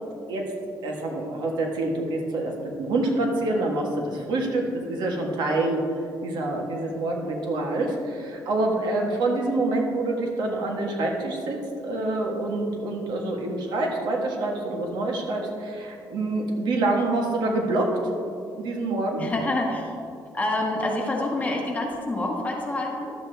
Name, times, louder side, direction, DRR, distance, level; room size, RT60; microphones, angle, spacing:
voice 1, 0.8-5.8 6.2-18.0 18.6-19.3, right 2 dB, 70° right, 1 dB, 1.4 m, -26 dB
voice 2, 19.2-19.9 20.3-23.1, left 2 dB, 20° left, 0 dB, 1.3 m, -27 dB
11.5 x 7.8 x 3.4 m, 2.6 s
cardioid pair, 145°, 8 cm